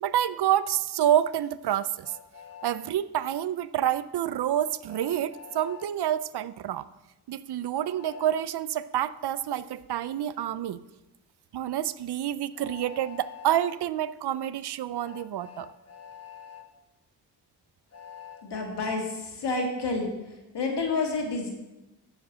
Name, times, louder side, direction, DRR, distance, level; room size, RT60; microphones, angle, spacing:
voice 1, 0.0-2.1 2.6-6.9 7.3-10.8 11.5-15.7, right 11 dB, 70° right, 16 dB, 0.5 m, -28 dB
Train, 2.0-2.8 4.9-5.9 8.0-8.3 10.3-10.5 12.5-13.8 15.0-16.6 17.9-18.4, left 8 dB, 35° left, 1.2 m, -46 dB
voice 2, 18.4-20.1 20.5-21.5, left 3 dB, 75° left, 1 dB, 2.3 m, -29 dB
7.4 x 6.4 x 7.3 m, 0.99 s
cardioid pair, 65°, 41 cm